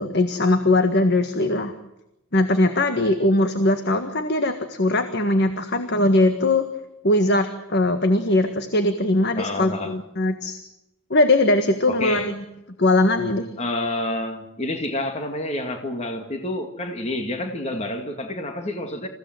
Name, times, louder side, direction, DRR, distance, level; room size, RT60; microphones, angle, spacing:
voice 1, 0.0-1.7 2.3-6.7 7.0-10.6 11.1-12.4 12.8-13.5, left 2 dB, 50° left, 1.7 m, -20 dB
voice 2, 9.4-10.0 11.9-12.3 13.6-19.1, left 1 dB, 30° left, 2.1 m, -28 dB
28.0 x 16.5 x 7.9 m
head